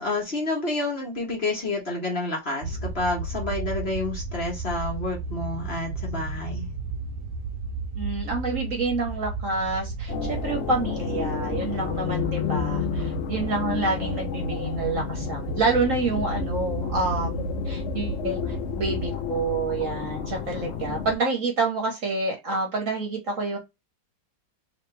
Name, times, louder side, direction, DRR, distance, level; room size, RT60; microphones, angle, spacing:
voice 1, 0.0-6.7, left 2 dB, 35° left, 1.5 m, -29 dB
sound 1, 2.6-19.1, right 3 dB, 80° right, 1.2 m, -33 dB
voice 2, 7.9-23.6, right 3 dB, 50° right, 1.3 m, -28 dB
sound 2, 10.1-21.2, left 9 dB, 85° left, 0.6 m, -31 dB
3.3 x 3.1 x 3.2 m
omnidirectional pair, 2.0 m